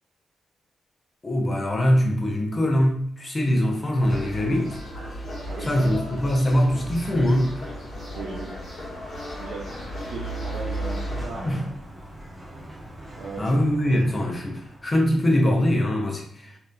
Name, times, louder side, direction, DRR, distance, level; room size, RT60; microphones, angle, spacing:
voice 1, 1.2-4.8 5.7-7.5 11.5-11.6 13.4-16.5, equal, 35° left, 1 dB, 0.9 m, -22 dB
sound 1, 4.0-11.3, equal, 50° left, 1.3 m, -34 dB
voice 2, 5.5-6.0 8.1-8.6 9.4-11.7 13.1-13.5 13.9-14.0, right 3 dB, 75° right, -4 dB, 0.6 m, -37 dB
Sliding door, 10.0-15.1, equal, 30° right, 1.0 m, -43 dB
3.1 x 2.8 x 2.2 m, 0.70 s
hypercardioid pair, 45°, 0 cm